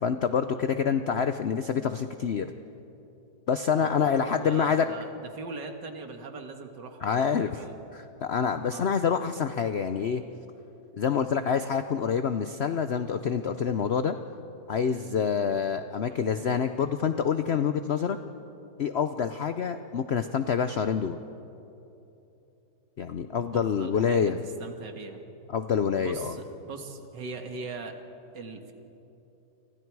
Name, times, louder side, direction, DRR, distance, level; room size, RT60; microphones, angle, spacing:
voice 1, 0.0-2.5 3.5-4.9 7.0-7.5 7.9-10.2 11.0-14.2 14.7-18.2 18.8-21.2 23.0-24.4 25.5-26.3, left 7 dB, 80° left, 9 dB, 0.5 m, -27 dB
voice 2, 3.7-7.7 8.6-8.9 15.3-15.6 16.1-16.2 23.5-25.2 26.0-27.9 28.3-28.7, right 4 dB, 70° right, 5 dB, 2.3 m, -41 dB
29.5 x 24.5 x 4.7 m, 2.9 s
omnidirectional pair, 2.0 m